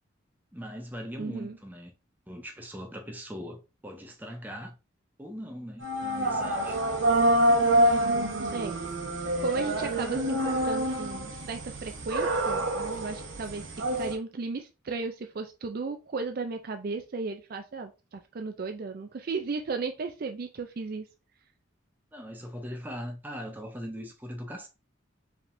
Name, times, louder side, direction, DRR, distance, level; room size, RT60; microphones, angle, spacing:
voice 1, 0.5-1.9 2.3-4.7 5.2-6.8 22.1-24.7, equal, 10° right, 0.7 m, -40 dB
voice 2, 1.2-1.6 8.0-8.8 9.4-13.6 13.9-21.1, right 4 dB, 45° right, 0.4 m, -35 dB
sound 1, 5.8-14.1, right 1 dB, 70° right, 1.0 m, -27 dB
4.8 x 3.5 x 2.6 m
head